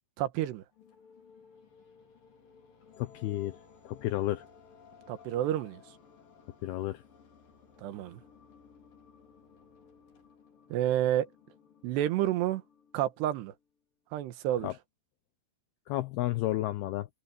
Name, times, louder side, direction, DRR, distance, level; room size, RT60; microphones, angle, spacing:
voice 1, 0.2-0.6 5.1-5.8 7.8-8.2 10.7-11.3 11.8-12.6 12.9-13.5 14.1-14.7, right 12 dB, 75° right, 3.3 m, -29 dB
sound 1, 0.7-13.7, left 6 dB, 55° left, 6.0 m, -58 dB
voice 2, 3.0-3.6 3.9-4.5 6.6-7.0 14.6-14.7 15.9-17.1, left 15 dB, 75° left, 2.5 m, -31 dB
omnidirectional pair, 5.0 m